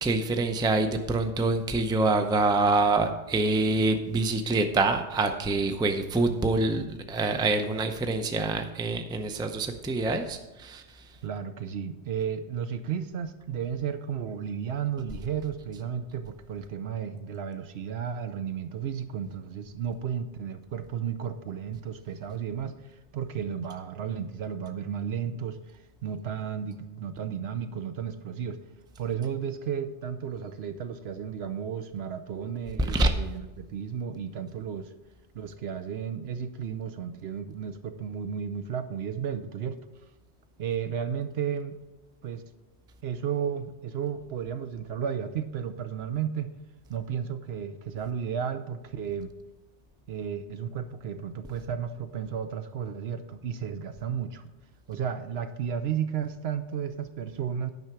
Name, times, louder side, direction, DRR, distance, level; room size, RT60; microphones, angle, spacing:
voice 1, 0.0-10.8 32.8-33.1, right 3 dB, 5° right, 6 dB, 0.4 m, -26 dB
voice 2, 11.2-22.8 23.1-25.6 26.0-28.6 29.0-34.9 35.3-39.8 40.6-41.7 42.2-42.4 43.0-46.5 46.9-49.3 50.1-54.4 54.9-57.7, right 8 dB, 70° right, 10 dB, 0.8 m, -33 dB
9.5 x 5.7 x 6.0 m, 1.1 s
omnidirectional pair, 1.2 m